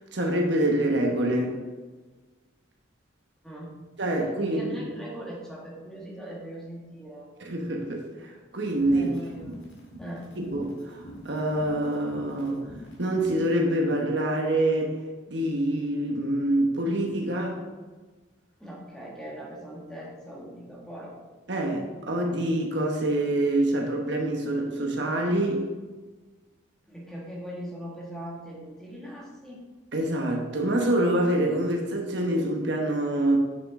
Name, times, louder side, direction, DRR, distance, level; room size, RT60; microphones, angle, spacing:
voice 1, 0.1-1.6 4.0-4.8 7.4-9.1 10.4-12.6 13.0-14.9 15.3-17.6 21.5-25.7 29.9-33.4, right 1 dB, 60° right, 1 dB, 1.2 m, -26 dB
voice 2, 4.4-7.3 8.9-9.6 10.0-10.3 18.6-21.1 26.8-29.6, equal, 5° left, -4 dB, 1.6 m, -40 dB
sound 1, 8.6-13.5, equal, 65° left, 2.3 m, -44 dB
8.9 x 6.5 x 3.7 m, 1.3 s
head